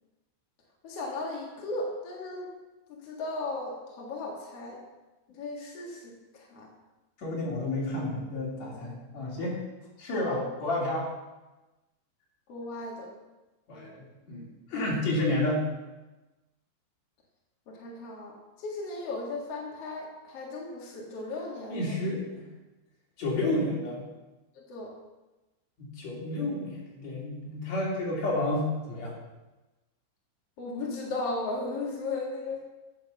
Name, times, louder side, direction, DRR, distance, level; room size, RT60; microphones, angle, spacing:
voice 1, 0.8-2.5 2.9-4.8 5.3-6.7 10.3-10.4 12.5-13.1 17.7-21.9 24.5-24.9 30.6-32.6, left 2 dB, 70° left, -2 dB, 1.4 m, -36 dB
voice 2, 7.2-9.6 10.0-11.0 13.7-15.7 21.7-22.5 23.2-24.1 25.8-29.1, left 1 dB, 40° left, -4 dB, 3.5 m, -30 dB
9.2 x 8.3 x 7.0 m, 1.1 s
omnidirectional pair, 5.8 m